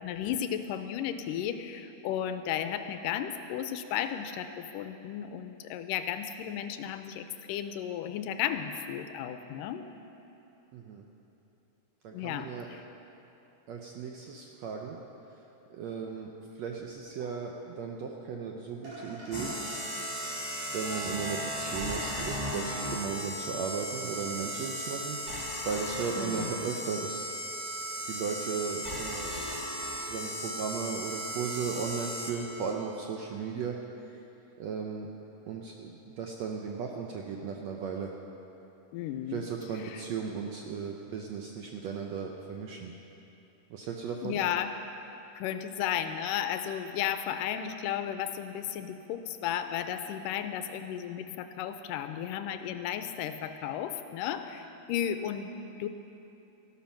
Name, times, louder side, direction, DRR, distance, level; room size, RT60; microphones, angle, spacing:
voice 1, 0.0-9.8 12.1-12.8 26.2-26.5 38.9-39.4 39.8-40.0 44.2-44.7 45.4-55.5 55.8-55.9, left 9 dB, 80° left, 9 dB, 2.2 m, -34 dB
voice 2, 10.7-11.1 12.0-12.7 13.7-15.0 15.7-16.3 16.6-19.6 20.7-25.2 25.7-27.3 28.1-29.3 29.9-33.8 34.1-34.2 34.6-35.1 35.5-38.1 39.3-42.9 43.7-44.4, right 6 dB, 75° right, 1 dB, 1.6 m, -36 dB
sound 1, 16.8-16.9 17.2-17.3 18.4-18.5 18.8-19.6 20.5-20.6 20.9-21.6, right 1 dB, 55° right, 5.8 m, -45 dB
sound 2, 19.3-32.7, equal, 15° right, 1.4 m, -36 dB
14.5 x 12.5 x 5.9 m, 2.9 s
omnidirectional pair, 3.9 m